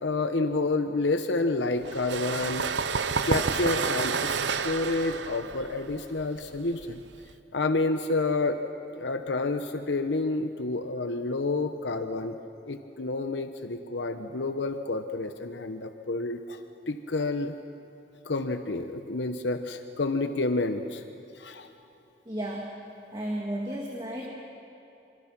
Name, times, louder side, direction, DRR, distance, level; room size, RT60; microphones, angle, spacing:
voice 1, 0.0-2.7 3.2-4.4 4.6-7.0 7.5-8.6 8.9-12.4 12.7-16.6 16.9-17.5 18.2-21.0 21.4-21.7, left 3 dB, 80° left, 7 dB, 0.9 m, -29 dB
sound 1, 1.8-7.3, right 5 dB, 80° right, 0.8 m, -30 dB
voice 2, 22.3-22.8 23.1-24.4, right 1 dB, 25° right, -2 dB, 2.1 m, -33 dB
26.0 x 24.5 x 6.0 m, 2.8 s
head